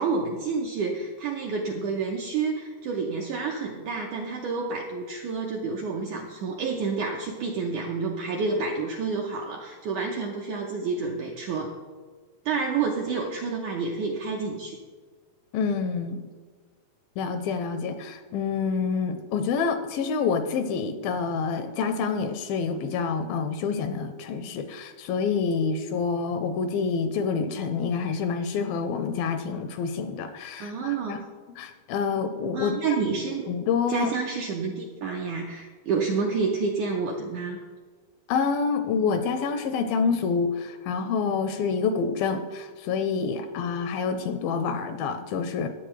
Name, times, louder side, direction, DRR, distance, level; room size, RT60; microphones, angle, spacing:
voice 1, 0.0-11.8 12.5-14.8 30.6-31.2 32.5-33.5 33.9-37.6, right 4 dB, 80° right, 0 dB, 1.8 m, -29 dB
voice 2, 15.5-16.2 17.2-31.2 31.6-32.8 33.5-34.1 38.3-45.7, left 5 dB, 80° left, 8 dB, 2.2 m, -27 dB
15.0 x 9.6 x 3.2 m, 1.5 s
omnidirectional pair, 4.5 m